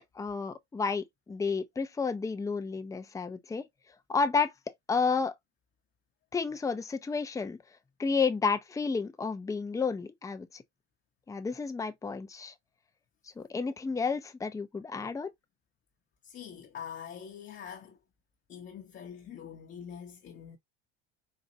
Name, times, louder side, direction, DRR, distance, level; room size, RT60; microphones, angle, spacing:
voice 1, 0.1-3.7 4.1-4.5 4.9-5.3 6.3-7.6 8.0-10.6 11.3-12.5 13.4-15.3, left 5 dB, 10° left, 0.5 m, -31 dB
voice 2, 16.2-18.0 18.5-20.6, left 8 dB, 35° left, 0.8 m, -44 dB
4.2 x 2.4 x 2.7 m
supercardioid pair, 90°, 30 cm